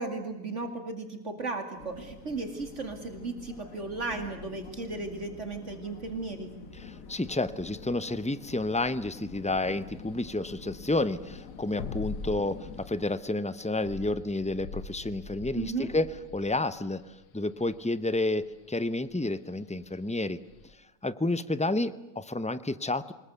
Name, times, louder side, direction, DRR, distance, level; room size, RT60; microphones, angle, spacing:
voice 1, 0.0-6.5 15.6-15.9, right 3 dB, 50° right, 6 dB, 2.8 m, -35 dB
sound 1, 1.8-13.2, left 5 dB, 60° left, 1.8 m, -47 dB
voice 2, 6.8-20.4 21.0-23.1, left 2 dB, 10° left, 14 dB, 0.3 m, -30 dB
sound 2, 9.9-20.7, left 4 dB, 90° left, 1.7 m, -43 dB
25.5 x 21.0 x 8.2 m, 0.98 s
omnidirectional pair, 1.7 m